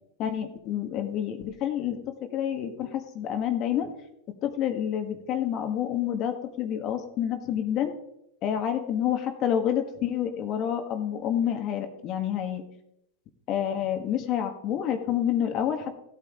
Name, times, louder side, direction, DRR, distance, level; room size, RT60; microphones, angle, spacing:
voice 1, 0.2-3.9 4.4-7.9 8.4-12.6 13.5-16.0, left 9 dB, 40° left, 6 dB, 1.7 m, -28 dB
16.0 x 8.9 x 3.8 m, 0.83 s
hypercardioid pair, 100°, 0 cm